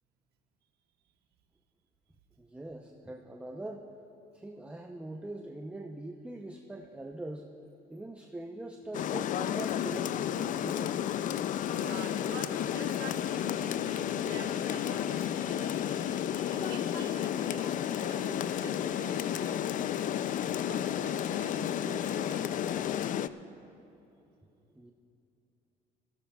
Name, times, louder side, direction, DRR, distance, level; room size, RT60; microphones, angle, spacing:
voice 1, 2.4-3.9 4.3-7.5 7.9-11.1 24.7-24.9, right 1 dB, 5° right, 1 dB, 0.7 m, -42 dB
Rain, 8.9-23.3, left 10 dB, 50° left, 0.4 m, -32 dB
voice 2, 11.7-22.8, right 6 dB, 70° right, 3 dB, 1.4 m, -47 dB
21.5 x 17.0 x 2.4 m, 2.8 s
cardioid pair, 110°, 17 cm